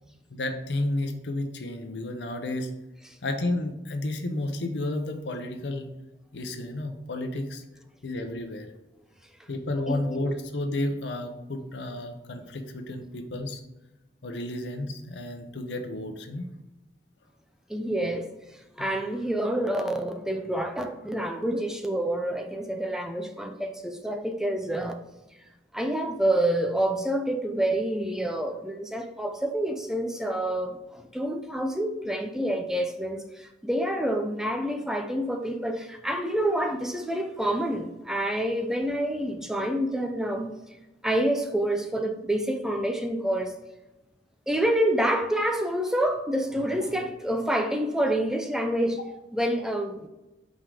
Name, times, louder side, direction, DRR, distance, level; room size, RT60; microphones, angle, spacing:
voice 1, 0.3-2.7 3.2-5.9 6.3-7.6 8.0-8.7 9.5-13.6 14.2-16.5, left 1 dB, 75° left, 0.8 m, -31 dB
voice 2, 9.9-10.3 17.7-18.3 18.8-25.0 25.7-40.5 41.0-43.6 44.5-49.0 49.3-50.1, right 1 dB, 5° right, 0.5 m, -28 dB
5.4 x 3.7 x 4.9 m
head